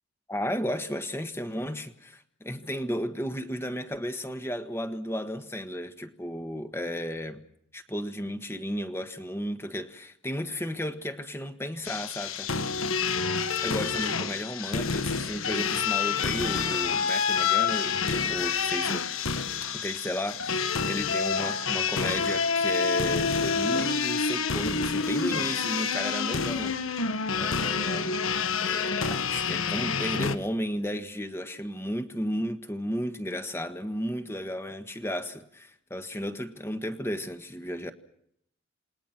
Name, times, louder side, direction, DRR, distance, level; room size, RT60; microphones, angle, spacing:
voice 1, 0.3-7.4 7.7-12.5 13.6-19.1 19.7-26.8 27.3-28.1 28.6-37.9, equal, 10° left, 1.5 m, -34 dB
sound 1, 11.8-30.4, left 5 dB, 85° left, 1.5 m, -28 dB
28.0 x 20.5 x 6.0 m
head